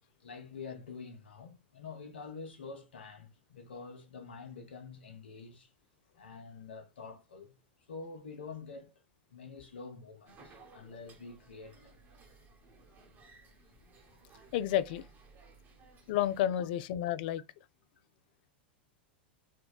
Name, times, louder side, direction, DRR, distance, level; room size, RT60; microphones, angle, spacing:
voice 1, 0.2-5.7 6.1-8.9 9.3-12.0 16.6-16.7, left 4 dB, 90° left, 0.7 m, -47 dB
sound 1, 10.3-16.4, right 3 dB, 35° right, 1.0 m, -58 dB
voice 2, 14.5-15.1 16.1-17.4, left 11 dB, 60° left, 0.3 m, -30 dB
3.7 x 2.2 x 2.2 m
hypercardioid pair, 110°, 6 cm